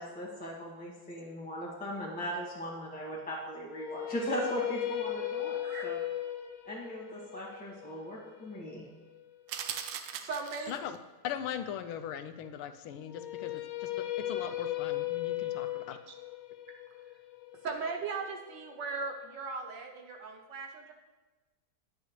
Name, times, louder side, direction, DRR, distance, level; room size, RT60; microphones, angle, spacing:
voice 1, 0.0-5.6 5.8-6.0 6.7-8.8, equal, 5° left, -7 dB, 1.6 m, -38 dB
sound 1, 3.7-9.8 13.0-19.1, left 13 dB, 70° left, 1.2 m, -37 dB
sound 2, 9.5-11.0, right 8 dB, 85° right, 1.5 m, -39 dB
voice 2, 10.1-10.8 15.4-16.1 17.0-17.1 17.6-20.9, right 4 dB, 65° right, 3 dB, 1.3 m, -39 dB
voice 3, 11.2-16.0, left 9 dB, 90° left, 10 dB, 1.5 m, -40 dB
10.5 x 9.1 x 3.2 m, 1.2 s
omnidirectional pair, 2.3 m